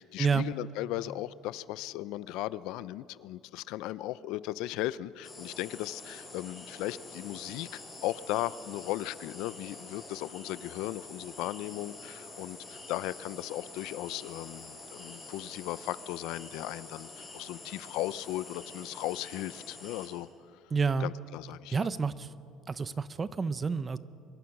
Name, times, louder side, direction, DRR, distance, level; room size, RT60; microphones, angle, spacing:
voice 1, 0.0-20.6 21.0-21.9, left 15 dB, 70° left, 17 dB, 0.5 m, -37 dB
sound 1, 5.2-20.1, left 2 dB, 10° left, 6.8 m, -47 dB
voice 2, 20.7-21.1 21.7-22.3 22.7-24.0, right 5 dB, 20° right, 15 dB, 0.6 m, -29 dB
25.0 x 22.5 x 6.0 m, 2.5 s
cardioid pair, 165°, 0 cm